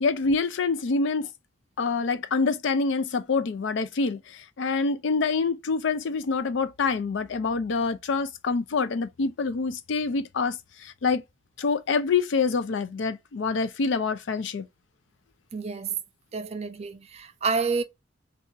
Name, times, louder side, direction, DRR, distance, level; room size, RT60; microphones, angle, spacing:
voice 1, 0.0-1.3 1.8-11.2 11.6-14.6, left 4 dB, 70° left, 0.4 m, -26 dB
voice 2, 15.5-15.9 16.3-17.8, right 4 dB, 30° right, 0.4 m, -29 dB
2.7 x 2.4 x 3.8 m
head